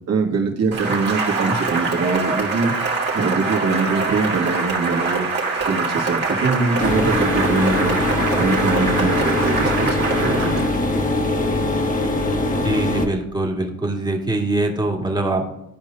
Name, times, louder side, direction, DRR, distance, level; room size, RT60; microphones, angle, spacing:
voice 1, 0.1-2.7 3.1-5.3 5.7-8.0 8.4-10.5, right 4 dB, 55° right, 0 dB, 2.2 m, -23 dB
Cheering / Applause, 0.7-10.8, right 3 dB, 35° right, 2.3 m, -24 dB
sound 1, 6.8-13.0, left 2 dB, 25° left, 1.4 m, -22 dB
voice 2, 12.6-15.4, right 2 dB, 15° right, -1 dB, 2.2 m, -23 dB
14.5 x 5.0 x 2.8 m, 0.91 s
cardioid pair, 90°, 30 cm